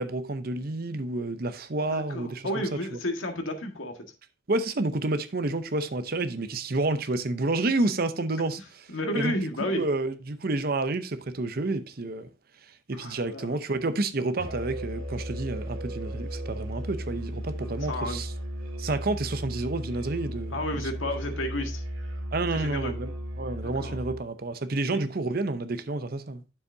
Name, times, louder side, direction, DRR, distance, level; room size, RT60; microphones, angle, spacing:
voice 1, 0.0-2.6 4.5-8.9 9.1-9.3 9.6-12.3 12.9-18.3 18.8-20.9 22.3-23.1 23.4-26.4, right 2 dB, 50° right, 0.7 m, -29 dB
voice 2, 1.9-4.0 8.9-9.8 12.9-13.6 17.8-18.2 20.5-21.8 22.5-22.9 23.6-24.0 24.9-25.0, left 1 dB, 90° left, 1.7 m, -32 dB
Musical instrument, 14.4-24.3, equal, 85° right, 2.1 m, -35 dB
9.6 x 7.1 x 2.7 m
head